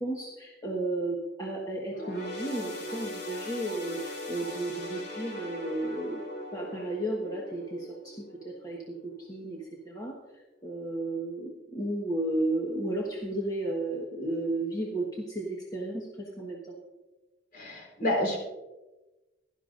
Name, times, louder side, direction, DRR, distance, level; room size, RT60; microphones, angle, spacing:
voice 1, 0.0-6.2 6.5-16.8, right 1 dB, 20° left, -2 dB, 1.3 m, -33 dB
sound 1, 1.9-9.6 10.0-10.2 11.0-11.1, left 1 dB, 70° left, 2.7 m, -40 dB
voice 2, 17.5-18.4, left 1 dB, 50° left, -1 dB, 4.0 m, -29 dB
16.5 x 12.0 x 2.5 m, 1.1 s
head